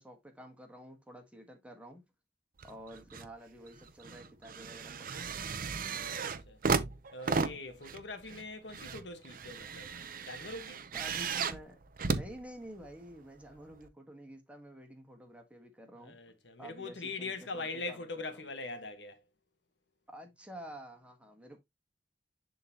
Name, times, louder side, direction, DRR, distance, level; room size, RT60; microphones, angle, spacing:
voice 1, 0.0-2.0 2.6-5.3 10.9-16.2 16.6-18.5 20.1-21.6, right 1 dB, 10° right, 1.5 m, -50 dB
sound 1, 2.6-3.3 3.7-13.0 13.8-13.9, right 4 dB, 55° right, 0.7 m, -36 dB
voice 2, 5.8-6.6 7.1-9.9 10.3-10.8 16.0-19.2, left 3 dB, 80° left, 1.4 m, -42 dB
10.5 x 3.9 x 2.9 m
head